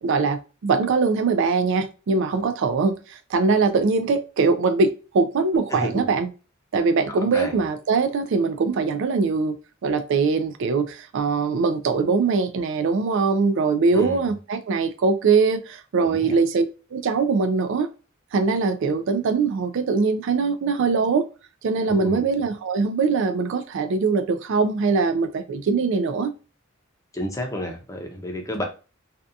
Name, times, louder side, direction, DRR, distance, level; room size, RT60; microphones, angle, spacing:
voice 1, 0.0-6.3 6.7-9.6 9.8-16.6 16.9-17.9 18.3-21.3 21.6-26.3, right 4 dB, 65° right, 0.4 m, -22 dB
voice 2, 5.7-6.0 7.3-7.7 13.9-14.2 16.0-16.4 21.9-22.2 27.1-28.6, equal, 15° left, 0.6 m, -30 dB
2.7 x 2.3 x 2.4 m
head